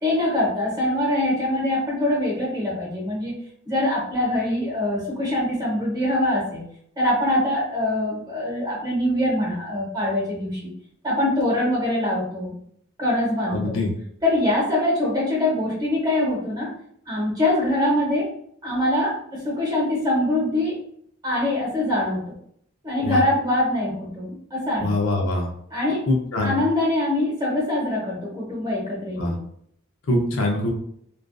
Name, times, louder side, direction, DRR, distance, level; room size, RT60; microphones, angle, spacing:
voice 1, 0.0-3.3 3.7-6.6 7.0-10.7 11.0-12.5 13.0-13.8 14.2-16.7 17.1-18.3 18.6-20.8 21.2-22.3 22.8-24.9 25.7-26.0 26.4-29.4, left 1 dB, 20° right, -4 dB, 0.9 m, -23 dB
voice 2, 13.5-13.9 23.0-23.2 24.8-25.5 26.1-26.5 29.2-29.3 30.1-30.7, left 2 dB, 65° left, 1 dB, 0.5 m, -23 dB
2.4 x 2.3 x 2.2 m, 0.67 s
head